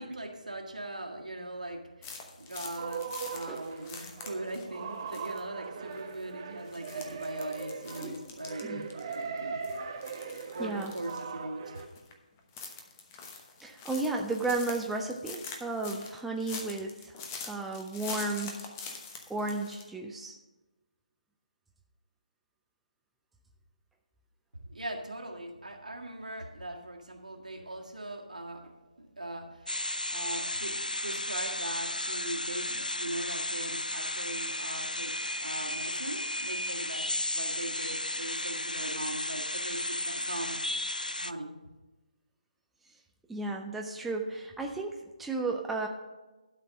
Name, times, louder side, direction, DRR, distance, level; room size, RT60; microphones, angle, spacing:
voice 1, 0.0-9.6 10.5-11.8 24.7-40.6 41.2-41.6, right 1 dB, 70° right, 1 dB, 1.8 m, -40 dB
sound 1, 2.0-4.8 5.1-5.4 5.9-6.2 6.7-9.4 9.6-11.3 11.7-12.1 12.4-19.9, left 5 dB, 20° left, 1.0 m, -44 dB
sound 2, 2.8-11.9, right 5 dB, 30° right, 0.8 m, -40 dB
voice 2, 10.6-10.9 13.6-18.7 19.3-20.4 43.3-45.9, right 3 dB, 5° right, 1 dB, 0.4 m, -34 dB
sound 3, 29.7-41.3, left 1 dB, 85° left, 0.4 m, -34 dB
12.0 x 5.1 x 6.4 m, 1.1 s
figure-of-eight pair, 145°, 4 cm